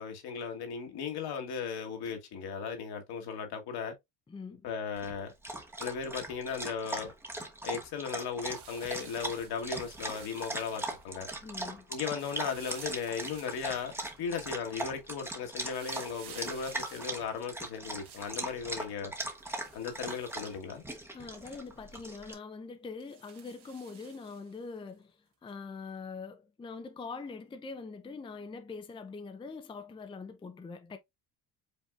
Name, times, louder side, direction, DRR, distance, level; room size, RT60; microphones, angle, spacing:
voice 1, 0.0-3.9 4.6-5.3 5.8-7.1 7.6-11.3 11.9-19.1 19.7-20.8, left 6 dB, 65° left, 1.5 m, -36 dB
voice 2, 4.3-4.7 11.4-11.9 21.1-31.0, left 4 dB, 10° left, 0.5 m, -43 dB
Dog, 5.0-22.3, right 1 dB, 5° right, 0.9 m, -40 dB
sound 1, 8.5-11.1 12.1-14.2 15.7-18.5 19.4-21.0 21.4-21.5 22.0-22.1 23.0-24.6 25.5-25.6, right 8 dB, 75° right, 1.8 m, -53 dB
5.4 x 3.5 x 2.4 m
cardioid pair, 105°, 41 cm